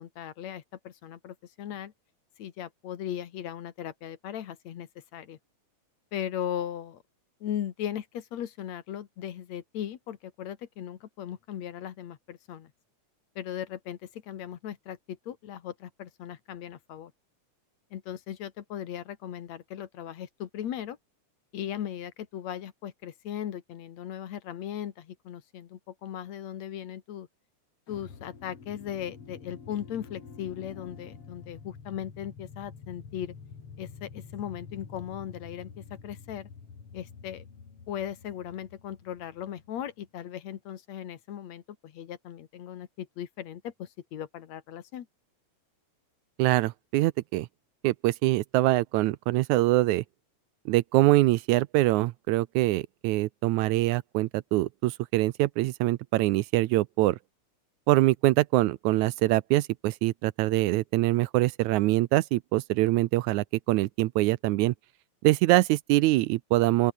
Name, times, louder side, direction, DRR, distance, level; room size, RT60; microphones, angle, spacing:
voice 1, 0.0-1.9 2.4-5.4 6.1-7.0 7.4-12.7 13.4-17.1 17.9-21.0 21.5-27.3 27.9-33.3 33.8-36.5 36.9-37.5 37.9-45.1, left 10 dB, 65° left, 2.6 m, -38 dB
sound 1, 27.9-40.1, left 5 dB, 50° left, 4.2 m, -48 dB
voice 2, 46.4-47.5 47.8-50.0 50.7-57.2 57.9-64.7 65.2-66.9, right 18 dB, 80° right, 1.9 m, -24 dB
open air
omnidirectional pair, 3.6 m